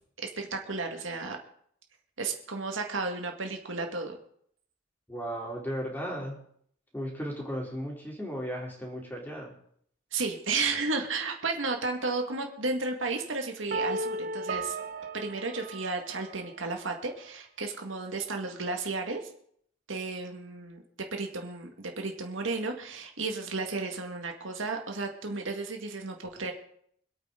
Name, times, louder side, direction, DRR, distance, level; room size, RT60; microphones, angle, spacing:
voice 1, 0.2-1.4 2.2-4.2 10.1-14.8 15.1-19.3 19.9-20.8 21.1-26.5, right 3 dB, 80° right, 3 dB, 2.0 m, -33 dB
voice 2, 5.1-6.4 6.9-9.5, equal, 10° left, -3 dB, 3.7 m, -35 dB
sound 1, 13.7-16.6, right 2 dB, 45° right, 0.7 m, -35 dB
25.5 x 8.7 x 4.0 m, 0.65 s
head